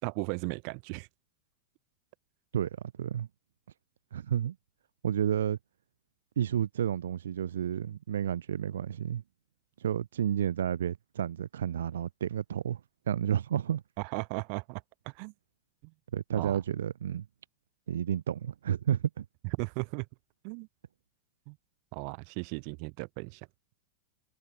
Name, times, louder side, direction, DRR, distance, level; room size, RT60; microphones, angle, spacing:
voice 1, 0.0-1.1 14.0-14.8 15.2-15.3 15.8-15.9 16.3-16.6 19.6-20.1 20.4-20.7 21.5-21.6 21.9-23.4, right 40 dB or more, 45° right, 3.7 m, -36 dB
voice 2, 4.1-4.5 5.0-5.6 6.4-9.2 9.8-12.8 13.1-13.8 16.1-17.2 17.9-19.2, right 9 dB, 65° right, 3.4 m, -31 dB
figure-of-eight pair, 90°, 0 cm